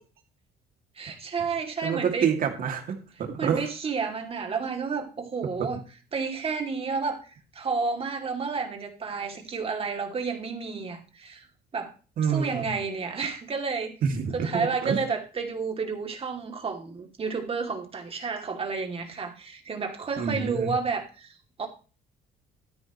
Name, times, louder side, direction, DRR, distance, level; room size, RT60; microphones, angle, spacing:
voice 1, 1.0-2.3 3.4-5.8 6.1-7.3 7.5-11.5 11.7-11.9 12.3-14.0 14.3-21.7, right 5 dB, 35° right, 4 dB, 2.6 m, -31 dB
voice 2, 1.8-3.6 5.6-5.7 12.2-12.7 14.0-15.0 20.2-20.7, right 7 dB, 60° right, 4 dB, 2.4 m, -27 dB
13.0 x 9.9 x 3.1 m, 0.35 s
cardioid pair, 110°, 17 cm